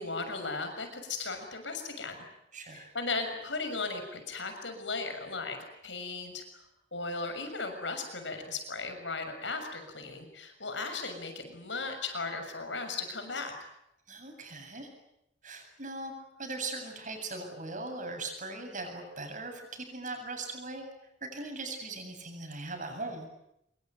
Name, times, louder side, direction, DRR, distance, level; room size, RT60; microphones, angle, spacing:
voice 1, 0.0-2.2 2.7-5.6 5.8-6.4 6.9-13.5, left 3 dB, 80° left, 7 dB, 6.6 m, -36 dB
voice 2, 2.5-2.9 14.1-14.9 15.4-16.1 16.4-20.9 21.2-23.3, right 3 dB, 45° right, 4 dB, 7.9 m, -39 dB
26.5 x 23.5 x 9.3 m, 0.82 s
head